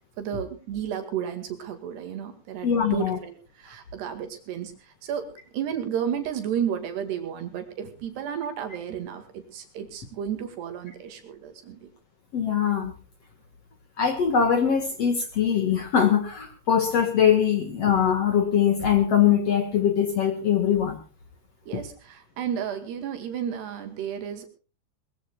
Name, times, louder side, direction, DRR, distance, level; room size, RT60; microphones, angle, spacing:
voice 1, 0.2-5.3 5.5-11.9 21.7-24.5, right 8 dB, 70° right, 8 dB, 4.0 m, -32 dB
voice 2, 2.6-3.2 12.3-12.9 14.0-21.0 21.7-21.8, left 8 dB, 55° left, 8 dB, 1.9 m, -22 dB
22.0 x 21.0 x 2.4 m, 0.34 s
omnidirectional pair, 5.1 m